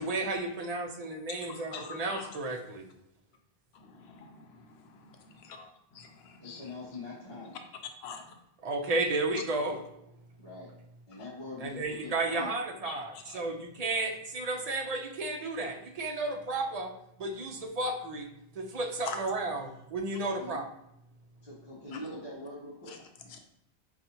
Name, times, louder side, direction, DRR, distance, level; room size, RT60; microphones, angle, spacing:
voice 1, 0.0-2.9 8.6-9.8 11.6-16.9 17.2-18.3 18.6-20.6, right 2 dB, 55° right, 3 dB, 0.5 m, -33 dB
voice 2, 1.3-2.4 3.7-5.3 5.6-5.7 6.2-6.6 8.0-8.2 12.8-13.4 19.0-19.2 21.9-22.0 22.9-23.0 23.3-23.4, left 6 dB, 80° left, 4 dB, 0.8 m, -44 dB
voice 3, 6.4-7.6 10.4-10.7 11.1-12.6 20.4-20.6 21.4-22.9 23.2-23.4, left 2 dB, 35° left, -7 dB, 0.9 m, -43 dB
5.3 x 2.4 x 2.8 m, 0.80 s
omnidirectional pair, 1.1 m